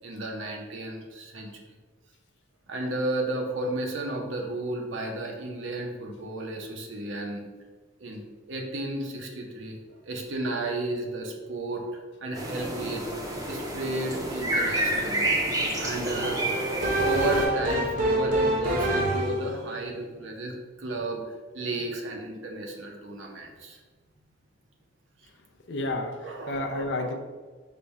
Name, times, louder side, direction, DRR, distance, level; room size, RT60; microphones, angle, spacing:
voice 1, 0.0-1.5 2.7-7.4 8.0-9.8 10.1-13.0 13.5-15.3 15.7-21.2 21.5-23.8 26.2-27.1, right 2 dB, 75° right, 1 dB, 0.8 m, -33 dB
sound 1, 12.4-17.5, right 1 dB, 20° right, 0.6 m, -29 dB
sound 2, 16.2-19.5, right 1 dB, 45° right, 0.9 m, -26 dB
voice 2, 25.7-27.1, left 2 dB, 60° left, 4 dB, 0.5 m, -31 dB
5.2 x 2.3 x 4.1 m, 1.4 s
head